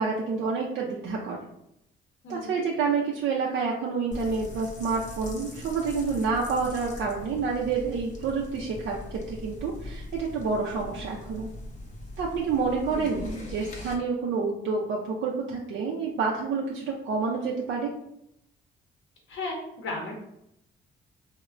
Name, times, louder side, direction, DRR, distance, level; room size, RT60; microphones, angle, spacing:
voice 1, 0.0-1.4 2.3-11.5 12.2-17.9, right 4 dB, 70° right, -2 dB, 0.4 m, -28 dB
voice 2, 2.2-2.6 12.9-13.0 13.3-13.5 19.3-20.1, left 2 dB, 70° left, 0 dB, 0.7 m, -35 dB
sound 1, 4.1-13.9, left 1 dB, 40° left, 0.7 m, -41 dB
3.1 x 2.1 x 2.4 m, 0.79 s
cardioid pair, 90°, 20 cm